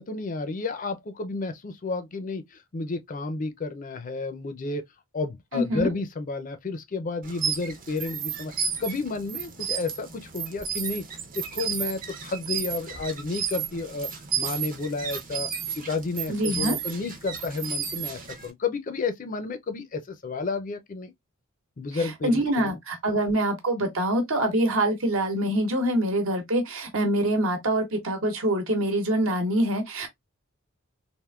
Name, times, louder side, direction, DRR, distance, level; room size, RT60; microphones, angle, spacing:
voice 1, 0.0-2.4 2.7-4.8 5.1-8.5 8.8-11.0 11.3-14.1 14.4-15.5 15.8-21.1 21.8-22.7, left 3 dB, 40° left, 0.4 m, -31 dB
voice 2, 5.5-5.9 16.3-16.8 21.9-30.1, right 1 dB, 75° right, 1.1 m, -25 dB
sound 1, 7.2-18.5, right 7 dB, 40° right, 0.6 m, -33 dB
3.5 x 2.5 x 2.3 m
head